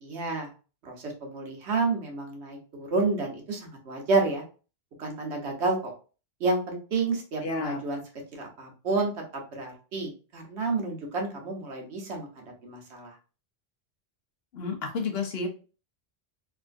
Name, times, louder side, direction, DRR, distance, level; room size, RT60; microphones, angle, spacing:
voice 1, 0.0-0.5 0.8-4.4 5.0-5.9 6.4-8.0 8.3-9.1 9.5-13.2, right 3 dB, 85° right, 1 dB, 1.2 m, -30 dB
voice 2, 7.4-7.8 14.5-15.5, left 4 dB, 70° left, 2 dB, 1.0 m, -31 dB
3.6 x 2.4 x 2.5 m, 0.35 s
omnidirectional pair, 1.1 m